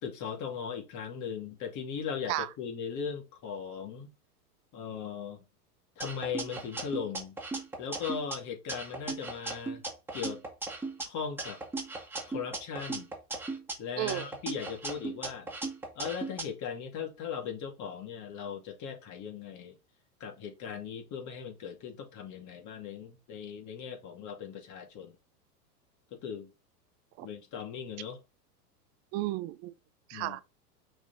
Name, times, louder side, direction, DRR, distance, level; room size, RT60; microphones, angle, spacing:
voice 1, 0.0-4.1 4.7-5.4 6.0-7.4 7.8-9.8 10.1-10.4 11.0-11.6 12.3-13.1 13.8-15.5 16.0-19.8 20.2-25.2 26.1-26.5 27.2-28.2 30.1-30.4, left 7 dB, 35° left, 2.5 m, -38 dB
sound 1, 6.0-8.3 8.7-11.0 11.4-13.7 14.1-16.4, right 3 dB, 5° right, 2.0 m, -37 dB
voice 2, 14.0-14.3 27.2-27.3 29.1-29.7 30.1-30.4, right 16 dB, 35° right, 0.6 m, -33 dB
6.1 x 4.1 x 3.9 m
hypercardioid pair, 100°, 48 cm